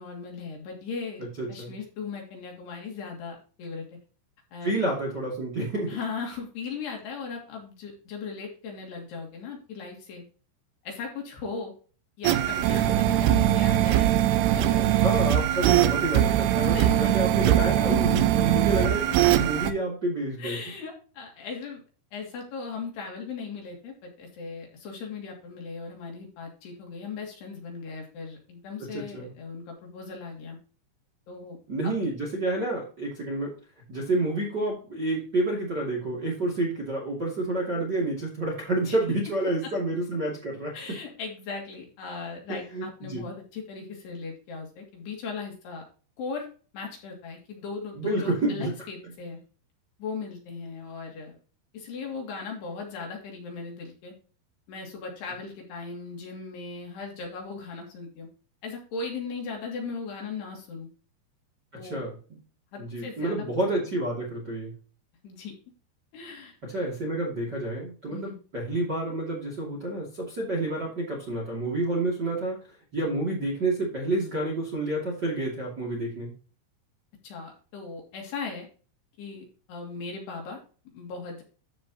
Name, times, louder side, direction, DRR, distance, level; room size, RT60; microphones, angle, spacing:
voice 1, 0.0-3.9 4.5-4.7 5.9-10.2 10.8-11.7 12.2-14.2 14.5-14.9 16.7-17.1 20.4-21.8 22.1-30.6 31.3-31.6 31.8-31.9 38.9-39.0 40.7-45.8 46.2-46.5 46.7-49.4 50.0-51.4 51.7-54.1 54.7-58.3 58.6-60.9 61.7-62.0 62.7-63.4 63.7-63.8 65.2-65.5 66.1-66.5 68.1-68.4 77.2-78.7 79.2-80.6 80.9-81.4, left 4 dB, 60° left, 0 dB, 4.4 m, -38 dB
voice 2, 1.4-1.7 4.6-6.0 12.7-13.0 15.0-20.6 28.9-29.3 31.7-33.5 33.9-41.0 42.7-43.2 48.0-48.7 61.8-62.1 62.8-64.7 66.6-72.6 72.9-76.3, right 2 dB, 30° right, -2 dB, 2.4 m, -29 dB
sound 1, 12.2-19.7, right 12 dB, 80° right, 2.6 m, -22 dB
14.0 x 5.2 x 2.9 m, 0.37 s
omnidirectional pair, 5.5 m